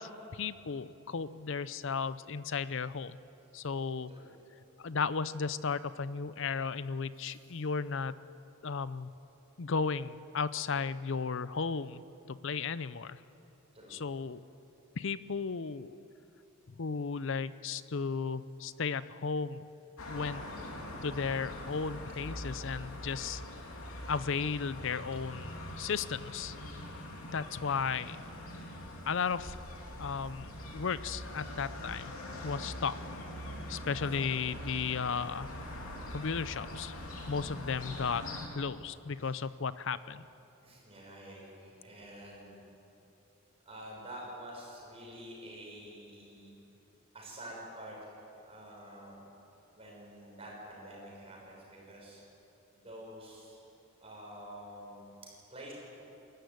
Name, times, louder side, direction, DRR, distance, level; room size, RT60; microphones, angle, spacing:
voice 1, 0.0-3.2 3.5-4.1 4.8-8.1 8.6-9.1 9.6-12.0 12.3-13.2 13.9-14.4 15.0-15.9 16.7-19.7 20.1-20.4 21.0-23.4 24.1-26.6 27.3-28.2 29.0-29.6 30.0-32.1 32.4-32.9 33.7-35.5 36.1-36.9 37.3-38.3 38.5-40.2, left 5 dB, 60° left, 16 dB, 0.6 m, -35 dB
voice 2, 7.2-7.6 13.7-14.0 33.8-35.0 39.2-39.4 40.6-42.6 43.6-46.5 47.1-48.1 48.4-49.2 49.8-52.2 52.8-53.6 54.0-55.7, right 1 dB, 25° right, -3 dB, 6.2 m, -48 dB
seaside sunday, 20.0-38.5, left 1 dB, 80° left, 2.9 m, -43 dB
22.0 x 13.5 x 9.4 m, 2.9 s
head